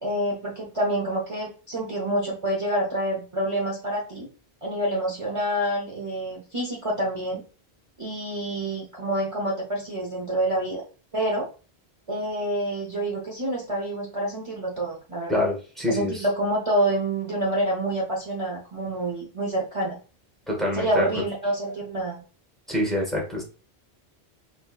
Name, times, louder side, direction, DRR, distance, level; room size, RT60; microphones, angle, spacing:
voice 1, 0.0-4.3 4.6-7.4 8.0-10.8 11.1-11.5 12.1-15.4 15.9-20.0 20.7-22.2, right 1 dB, 35° right, -3 dB, 0.9 m, -27 dB
voice 2, 15.3-16.2 20.5-21.1 22.7-23.4, left 1 dB, ahead, -2 dB, 1.3 m, -26 dB
4.3 x 2.7 x 2.4 m, 0.35 s
omnidirectional pair, 1.1 m